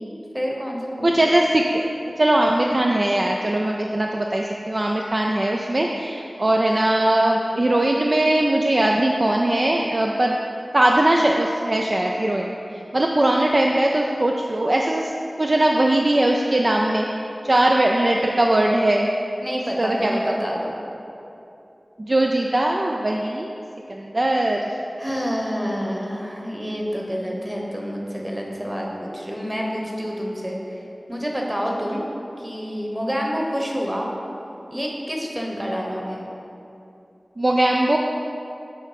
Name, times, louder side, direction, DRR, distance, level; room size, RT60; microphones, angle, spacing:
voice 1, 0.3-1.3 19.4-20.8 25.0-30.6 31.1-32.0 32.4-34.1 34.7-36.2, equal, 15° right, -1 dB, 1.1 m, -28 dB
voice 2, 1.0-1.9 2.2-10.4 10.7-15.1 15.4-17.1 17.4-19.1 19.7-20.3 22.1-23.5 23.9-24.6 37.4-38.0, right 1 dB, 45° right, 0 dB, 0.4 m, -20 dB
9.2 x 3.2 x 5.1 m, 2.8 s
wide cardioid pair, 55°, 0 cm